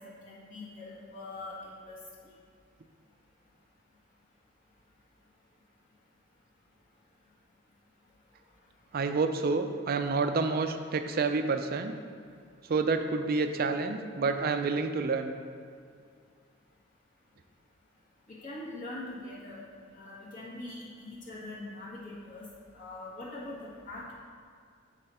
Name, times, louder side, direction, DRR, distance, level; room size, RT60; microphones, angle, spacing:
voice 1, 0.0-2.0 18.3-19.6 19.9-22.5 22.7-23.6 23.9-24.1, left 2 dB, 45° left, -8 dB, 1.6 m, -42 dB
voice 2, 8.9-11.9 12.7-15.3, right 4 dB, 50° right, 8 dB, 0.4 m, -28 dB
7.8 x 4.2 x 4.2 m, 2.2 s
head